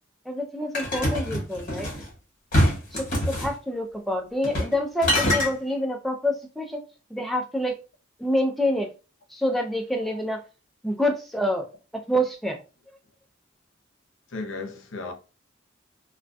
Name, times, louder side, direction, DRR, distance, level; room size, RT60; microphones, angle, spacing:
voice 1, 0.3-1.9 2.9-6.8 7.1-7.8 8.2-8.9 9.3-10.4 10.8-11.7 11.9-12.6, left 1 dB, ahead, 0.3 m, -27 dB
sound 1, 0.7-2.0 2.5-3.5 4.4-4.8 5.0-5.5, equal, 45° left, 1.0 m, -24 dB
voice 2, 14.3-15.1, left 3 dB, 85° left, 0.6 m, -35 dB
2.2 x 2.2 x 2.5 m
head